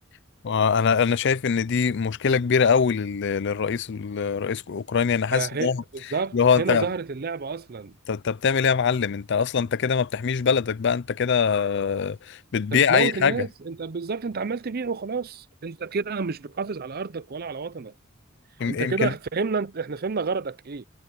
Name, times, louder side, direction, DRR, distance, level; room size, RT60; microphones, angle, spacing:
voice 1, 0.4-5.8 6.3-6.9 8.1-13.3 18.6-19.1, left 6 dB, 60° left, 0.5 m, -23 dB
voice 2, 5.3-8.0 12.7-17.9 18.7-20.8, right 4 dB, 50° right, 0.6 m, -30 dB
head